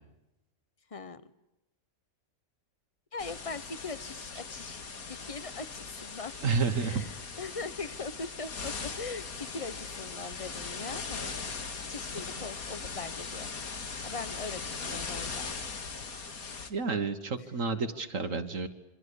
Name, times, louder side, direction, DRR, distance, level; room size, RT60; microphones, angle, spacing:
voice 1, 0.9-1.3 3.1-4.8 5.1-6.3 6.8-11.4 11.9-13.5 14.0-15.5, left 4 dB, 25° left, 14 dB, 1.0 m, -41 dB
sound 1, 3.2-16.7, left 5 dB, 75° left, 2.4 m, -39 dB
voice 2, 6.4-7.1 16.7-18.7, right 4 dB, 60° right, 8 dB, 1.7 m, -30 dB
27.0 x 25.0 x 8.4 m, 0.95 s
omnidirectional pair, 1.5 m